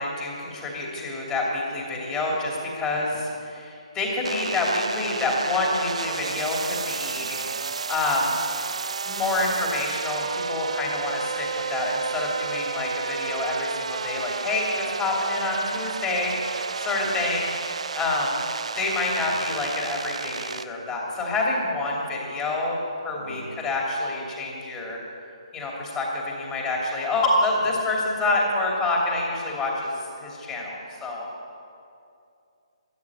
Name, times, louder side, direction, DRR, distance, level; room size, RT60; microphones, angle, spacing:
voice 1, 0.0-7.4 7.9-8.4 9.0-18.4 18.8-25.0 25.5-31.3, left 2 dB, 15° left, -2 dB, 2.8 m, -27 dB
voice 2, 2.8-3.2 7.1-7.5 17.0-17.3 19.2-19.6 23.1-23.6, equal, 85° right, 0 dB, 4.6 m, -45 dB
sound 1, 4.2-20.6, right 5 dB, 70° right, 0.5 m, -32 dB
13.5 x 9.4 x 9.9 m, 2.6 s
figure-of-eight pair, 150°, 4 cm